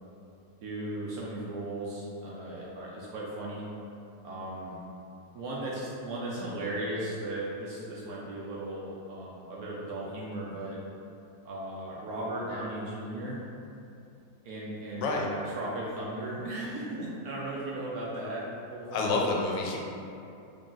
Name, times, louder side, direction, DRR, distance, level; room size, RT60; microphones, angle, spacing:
voice 1, 0.6-3.6 4.2-4.8 5.3-10.8 11.4-13.4 14.4-19.1, right 1 dB, 70° right, -6 dB, 0.9 m, -36 dB
voice 2, 14.9-15.3 18.9-19.8, left 3 dB, 85° left, -1 dB, 1.3 m, -28 dB
3.6 x 2.3 x 3.8 m, 2.7 s
omnidirectional pair, 2.0 m